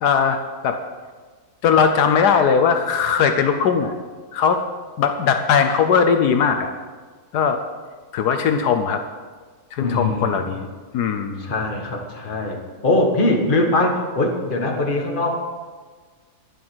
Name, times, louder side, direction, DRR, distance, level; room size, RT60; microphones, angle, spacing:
voice 1, 0.0-0.8 1.6-3.9 4.3-4.6 5.0-6.7 7.3-7.6 8.1-9.0 9.7-11.5, left 6 dB, 75° left, 6 dB, 1.3 m, -19 dB
voice 2, 9.8-10.5 11.4-15.4, left 2 dB, 30° left, 1 dB, 1.7 m, -22 dB
11.5 x 10.5 x 6.2 m, 1.4 s
omnidirectional pair, 1.7 m